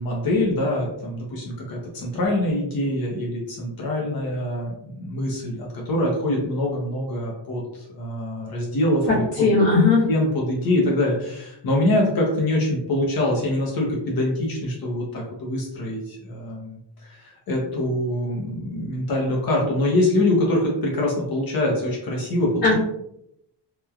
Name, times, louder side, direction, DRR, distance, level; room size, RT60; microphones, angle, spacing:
voice 1, 0.0-7.6 7.9-9.5 10.0-22.7, left 1 dB, 55° left, -2 dB, 0.7 m, -24 dB
voice 2, 9.1-10.0 22.6-22.7, left 3 dB, 70° left, -11 dB, 1.3 m, -18 dB
3.0 x 2.1 x 2.3 m, 0.77 s
wide cardioid pair, 175°, 43 cm